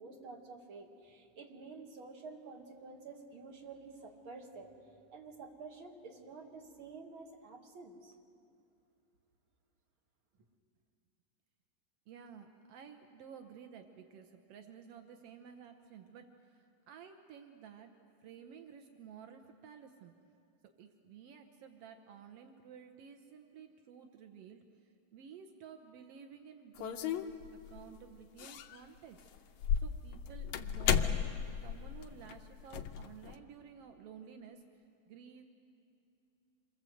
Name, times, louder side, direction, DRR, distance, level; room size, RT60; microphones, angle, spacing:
voice 1, 0.0-4.7 5.1-8.1, right 4 dB, 45° right, 1 dB, 2.3 m, -50 dB
voice 2, 12.1-17.9 18.2-20.1 20.8-27.3 27.7-29.5 29.8-31.2 31.6-35.4, right 7 dB, 75° right, 5 dB, 1.4 m, -53 dB
sound 1, 26.8-27.8 28.4-28.8 29.2-33.3, left 8 dB, 75° left, 1.9 m, -34 dB
27.0 x 23.0 x 7.8 m, 2.6 s
omnidirectional pair, 4.0 m